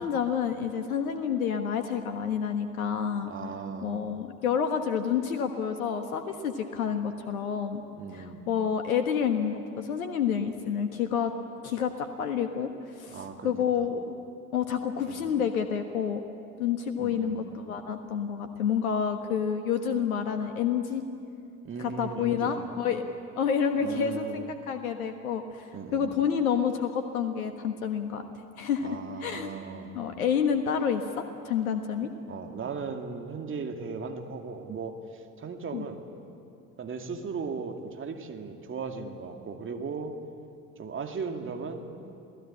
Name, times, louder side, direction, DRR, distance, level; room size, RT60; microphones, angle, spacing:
voice 1, 0.0-3.3 3.8-7.9 8.1-11.3 11.6-12.7 13.0-14.0 14.5-16.2 16.6-21.0 21.8-23.1 23.4-28.2 28.6-29.5 29.9-32.1 35.7-35.8, left 7 dB, 70° left, 8 dB, 1.4 m, -29 dB
voice 2, 3.3-4.0 8.0-8.5 13.1-13.5 13.8-13.9 15.1-15.4 17.0-17.4 21.6-22.7 23.8-24.5 25.7-26.1 28.8-30.0 32.3-36.1 36.8-40.2 40.8-41.9, right 5 dB, 25° right, 4 dB, 2.4 m, -37 dB
27.5 x 17.0 x 8.7 m, 2.6 s
figure-of-eight pair, 65°, 44 cm